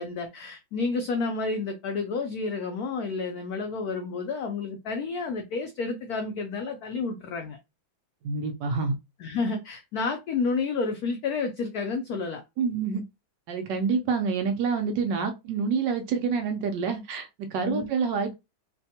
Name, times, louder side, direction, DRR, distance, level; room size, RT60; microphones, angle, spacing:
voice 1, 0.0-7.6 9.2-12.4 17.6-17.9, left 4 dB, 90° left, 0.8 m, -30 dB
voice 2, 8.2-8.9 12.6-13.0 13.5-18.3, right 5 dB, 70° right, 1.2 m, -27 dB
3.3 x 2.2 x 2.7 m
omnidirectional pair, 2.2 m